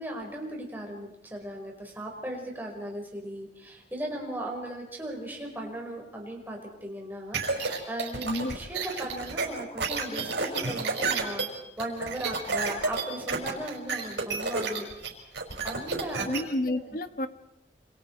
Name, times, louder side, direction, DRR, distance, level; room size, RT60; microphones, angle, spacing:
voice 1, 0.0-14.9 15.6-16.4 16.7-16.8, right 1 dB, 10° right, -1 dB, 5.3 m, -37 dB
sound 1, 7.3-16.4, right 4 dB, 90° right, 5.6 m, -30 dB
voice 2, 8.2-8.6 16.3-17.3, left 1 dB, 50° left, 10 dB, 1.3 m, -30 dB
28.0 x 26.5 x 4.8 m, 0.83 s
head